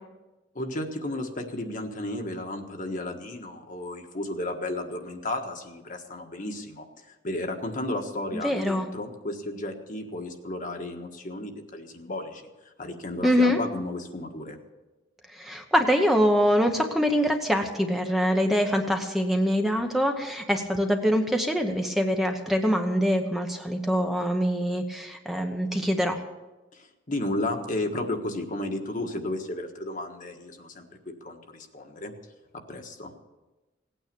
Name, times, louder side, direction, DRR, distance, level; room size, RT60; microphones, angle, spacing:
voice 1, 0.5-12.5 12.8-14.6 26.7-30.8 31.2-32.1 32.7-33.1, left 1 dB, 45° left, 4 dB, 1.5 m, -33 dB
voice 2, 8.4-8.9 13.2-13.6 15.3-26.2, equal, ahead, 3 dB, 0.9 m, -24 dB
17.5 x 9.1 x 6.9 m, 1.1 s
head